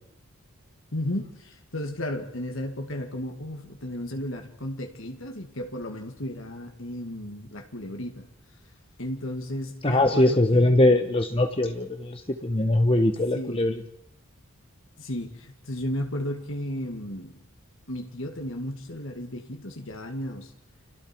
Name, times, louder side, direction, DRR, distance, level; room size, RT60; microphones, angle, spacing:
voice 1, 0.9-8.3 9.0-10.9 13.3-13.6 15.0-17.4 17.9-20.5, left 1 dB, 60° left, 4 dB, 2.2 m, -34 dB
voice 2, 9.8-13.7, left 1 dB, 25° left, 6 dB, 1.1 m, -21 dB
29.5 x 25.5 x 4.6 m, 0.76 s
head